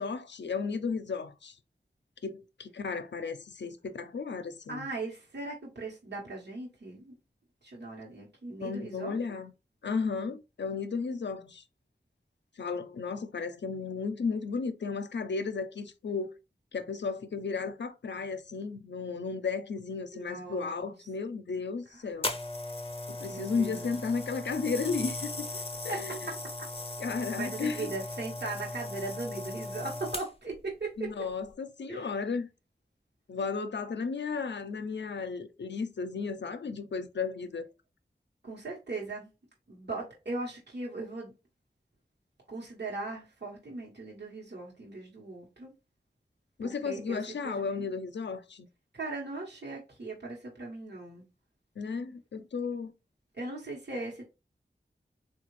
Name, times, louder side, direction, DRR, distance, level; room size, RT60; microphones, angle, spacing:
voice 1, 0.0-1.6 2.2-4.8 8.6-9.5 9.8-11.6 12.6-16.3 16.7-22.3 23.2-26.3 27.0-27.9 31.0-32.5 33.3-37.7 46.6-48.7 51.8-52.9, left 5 dB, 80° left, 0.5 m, -34 dB
voice 2, 4.7-7.2 7.6-9.2 20.1-20.9 21.9-22.0 23.3-24.0 25.6-26.3 27.3-31.1 31.9-32.1 38.4-39.3 39.7-41.3 42.5-45.7 46.6-47.9 48.9-51.2 53.3-54.2, right 3 dB, 70° right, 1.0 m, -39 dB
sound 1, 22.2-30.6 31.3-31.5, left 2 dB, 30° left, 0.5 m, -38 dB
3.6 x 2.3 x 3.0 m
wide cardioid pair, 45°, 18 cm